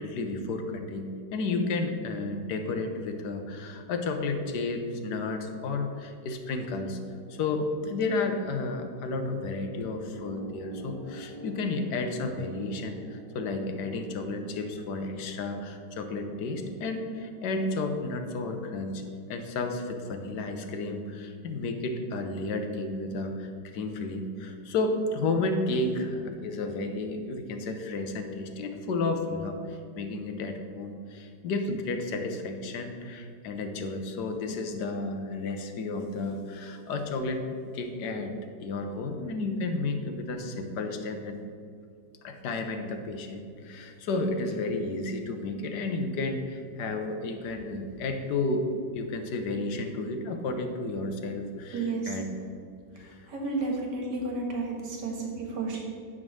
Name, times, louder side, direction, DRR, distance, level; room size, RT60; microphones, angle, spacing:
voice 1, 0.0-7.0 7.3-19.0 19.3-37.4 37.7-38.4 38.6-41.4 42.2-52.2 53.0-53.3, left 3 dB, 75° left, 5 dB, 1.4 m, -32 dB
sound 1, 6.4-17.9, equal, 20° right, 1.1 m, -48 dB
voice 2, 51.7-52.2 53.3-55.9, right 3 dB, 75° right, 0 dB, 2.0 m, -32 dB
10.0 x 3.7 x 6.2 m, 2.3 s
omnidirectional pair, 1.9 m